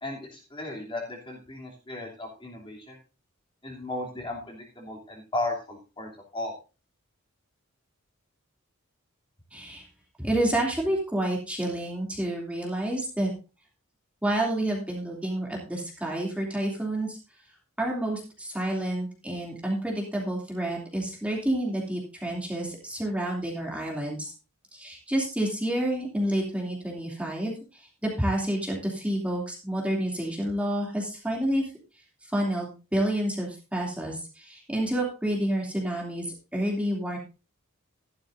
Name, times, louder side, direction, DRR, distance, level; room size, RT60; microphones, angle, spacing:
voice 1, 0.0-3.0 3.6-6.5, left 2 dB, 25° left, -2 dB, 3.0 m, -35 dB
voice 2, 9.5-9.8 10.2-13.3 14.2-17.2 17.8-24.3 24.7-31.6 32.2-36.3 36.5-37.2, right 1 dB, 5° right, -2 dB, 2.8 m, -29 dB
14.0 x 11.5 x 2.7 m, 0.31 s
head